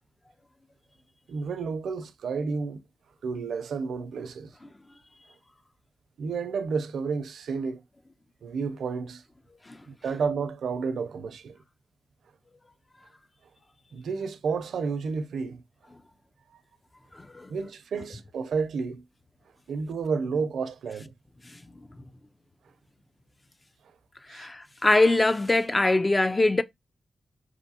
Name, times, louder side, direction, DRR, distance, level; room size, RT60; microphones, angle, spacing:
voice 1, 1.3-2.8 3.2-4.5 6.2-7.8 8.4-9.2 9.9-11.6 13.9-15.6 16.5-16.6 17.5-19.0 19.7-21.1 24.3-24.5, right 5 dB, 85° right, 0.5 m, -31 dB
voice 2, 17.1-17.5 21.5-21.6 24.3-26.6, left 2 dB, 25° left, 0.5 m, -23 dB
5.5 x 2.6 x 2.8 m
cardioid pair, 65°, 0 cm